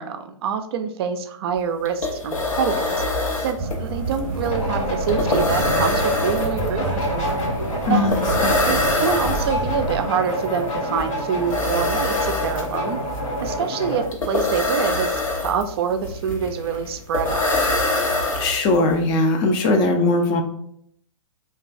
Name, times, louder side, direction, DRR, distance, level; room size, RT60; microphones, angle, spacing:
voice 1, 0.0-3.0 3.4-7.4 7.9-8.1 8.7-13.0 13.4-17.5, right 7 dB, 50° right, 7 dB, 0.4 m, -26 dB
sound 1, 1.5-1.6 1.8-18.9, left 2 dB, 85° left, 0.8 m, -25 dB
sound 2, 3.6-10.0, right 2 dB, 25° right, 0.8 m, -29 dB
sound 3, 4.4-14.1, equal, 65° left, 1.1 m, -27 dB
voice 2, 7.9-8.5 18.3-20.4, left 2 dB, 25° left, 5 dB, 0.4 m, -20 dB
3.0 x 2.3 x 2.5 m, 0.69 s
hypercardioid pair, 125°, 17 cm